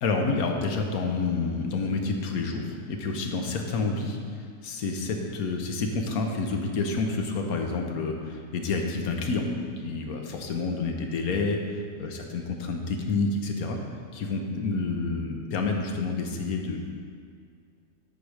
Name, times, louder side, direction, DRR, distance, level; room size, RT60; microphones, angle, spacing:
voice 1, 0.0-2.6 2.9-4.2 4.6-9.5 9.8-11.6 12.0-13.8 14.1-16.8, left 3 dB, 65° left, 2 dB, 1.3 m, -28 dB
9.3 x 4.8 x 4.9 m, 2.2 s
omnidirectional pair, 1.7 m